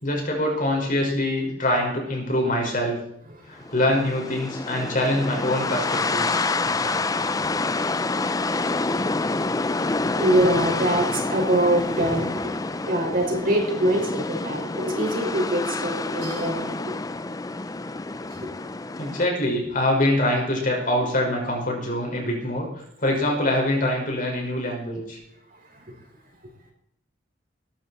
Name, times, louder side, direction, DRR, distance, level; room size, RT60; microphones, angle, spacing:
voice 1, 0.0-3.0 3.5-6.6 19.0-25.2, left 1 dB, 45° left, 0 dB, 5.2 m, -24 dB
sound 1, 3.6-19.3, left 3 dB, 20° left, 0.5 m, -28 dB
voice 2, 9.9-12.5 12.9-17.0 25.8-25.9, right 1 dB, 45° right, 0 dB, 5.3 m, -24 dB
20.0 x 13.0 x 4.3 m, 0.72 s
head